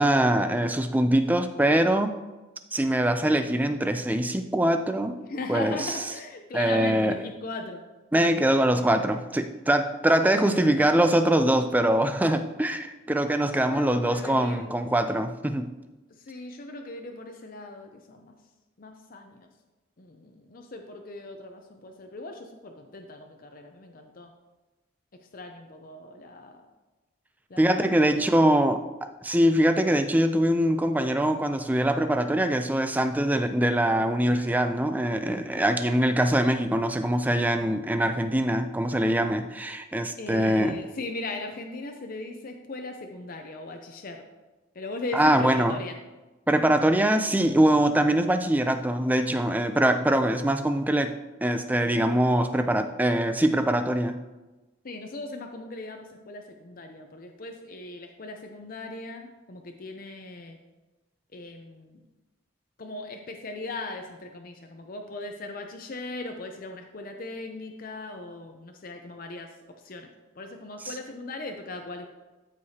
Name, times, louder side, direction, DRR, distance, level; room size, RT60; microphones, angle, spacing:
voice 1, 0.0-2.1 2.7-5.2 5.5-6.0 6.5-7.2 8.1-15.7 27.6-40.8 45.1-45.8 46.5-51.1 51.4-54.2 70.8-70.9, right 1 dB, 10° right, 8 dB, 0.3 m, -23 dB
voice 2, 5.2-7.8 8.7-8.9 10.2-10.8 13.5-14.7 16.2-18.3 18.8-19.5 20.0-24.3 25.3-26.6 27.5-28.2 28.5-28.7 40.2-44.2 44.7-46.0 54.8-60.6 61.3-62.0 62.8-69.5 69.8-70.1 70.4-72.1, left 2 dB, 40° left, 4 dB, 0.6 m, -39 dB
13.0 x 4.8 x 2.8 m, 1.1 s
head